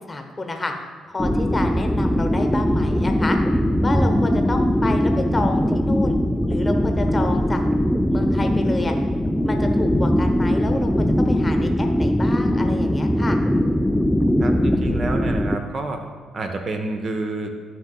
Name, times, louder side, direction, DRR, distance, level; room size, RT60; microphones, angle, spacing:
voice 1, 0.1-0.7 1.1-3.4 3.8-6.2 6.5-7.6 8.1-8.9 9.4-13.4, left 2 dB, 20° left, 4 dB, 1.0 m, -29 dB
sound 1, 1.2-15.6, equal, 5° left, 0.4 m, -20 dB
voice 2, 14.4-16.0 16.3-17.5, right 2 dB, 40° right, 5 dB, 0.8 m, -28 dB
13.0 x 6.1 x 2.3 m, 1.5 s
figure-of-eight pair, 40°, 0 cm